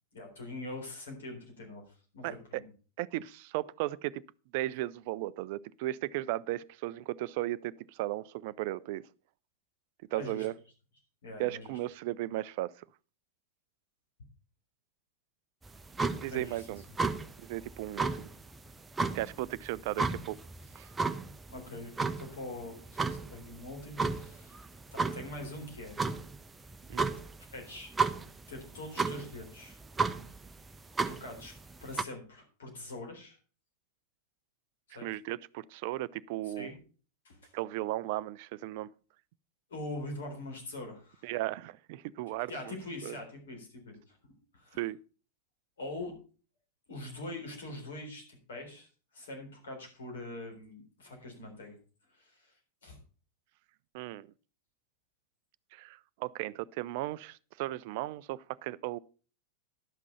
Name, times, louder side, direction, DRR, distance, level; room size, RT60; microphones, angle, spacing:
voice 1, 0.1-2.6 10.1-10.5 11.2-11.7 16.3-16.7 21.5-24.6 24.9-26.0 27.5-27.9 28.5-29.8 31.1-31.5 31.8-33.4 34.9-35.1 36.4-36.8 37.2-37.5 39.7-41.3 42.5-44.2 44.5-44.8 45.8-46.2 46.9-51.8 52.1-52.6 52.8-53.0, left 2 dB, 65° left, 3.7 m, -43 dB
voice 2, 2.2-2.6 3.0-4.2 4.5-9.0 10.1-10.5 11.4-12.8 16.2-16.8 17.4-18.3 19.1-20.4 20.8-20.9 26.9-27.1 35.0-36.7 37.5-38.9 41.2-42.7 43.0-43.2 44.8-45.0 53.9-54.3 55.7-59.0, right 16 dB, 50° right, 0.4 m, -36 dB
sound 1, 15.6-32.0, right 4 dB, 10° right, 0.7 m, -35 dB
11.5 x 6.0 x 5.5 m
figure-of-eight pair, 90°, 0 cm